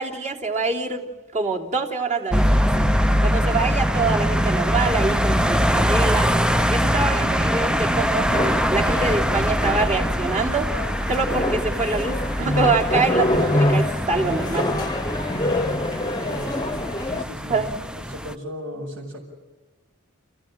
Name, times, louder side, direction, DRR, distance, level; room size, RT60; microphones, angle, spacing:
voice 1, 0.0-2.9 3.2-6.3 6.7-10.7 11.1-14.7 17.5-17.7, right 3 dB, 35° right, -1 dB, 3.2 m, -25 dB
sound 1, 2.3-18.3, equal, 5° right, 0.6 m, -23 dB
sound 2, 8.3-17.2, left 1 dB, 20° left, 1.1 m, -26 dB
voice 2, 16.1-17.7 17.9-19.2, equal, 75° right, -6 dB, 6.3 m, -36 dB
30.0 x 16.0 x 7.5 m, 1.3 s
head